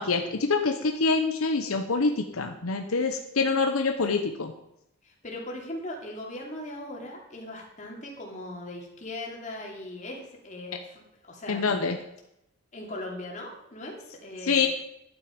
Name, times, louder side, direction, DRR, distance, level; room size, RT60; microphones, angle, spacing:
voice 1, 0.0-4.5 11.5-12.0 14.4-14.7, left 4 dB, 80° left, 5 dB, 0.9 m, -26 dB
voice 2, 5.0-11.0 11.3-11.8 12.7-14.7, left 1 dB, 35° left, -1 dB, 2.6 m, -39 dB
11.5 x 8.8 x 5.2 m, 0.81 s
head